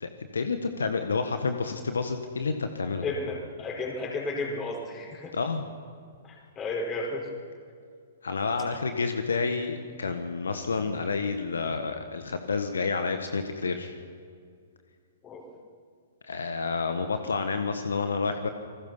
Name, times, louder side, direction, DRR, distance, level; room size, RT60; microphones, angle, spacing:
voice 1, 0.0-3.1 5.3-5.6 8.2-14.0 16.2-18.5, left 4 dB, 75° left, 7 dB, 1.5 m, -29 dB
voice 2, 3.0-5.3 6.2-7.3 15.2-15.5, left 2 dB, 25° left, 1 dB, 5.3 m, -33 dB
28.5 x 20.5 x 5.8 m, 2.2 s
figure-of-eight pair, 115°, 0 cm